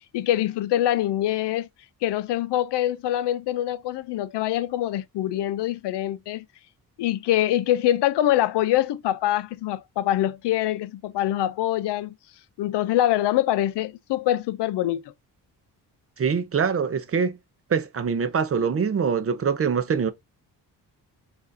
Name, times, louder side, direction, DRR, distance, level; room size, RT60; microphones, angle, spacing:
voice 1, 0.1-1.7 2.0-6.5 7.0-12.1 12.6-15.0, left 13 dB, 80° left, 0.6 m, -24 dB
voice 2, 16.2-17.4 17.7-20.1, right 6 dB, 35° right, 0.6 m, -24 dB
7.2 x 2.6 x 2.6 m
cardioid pair, 120°, 41 cm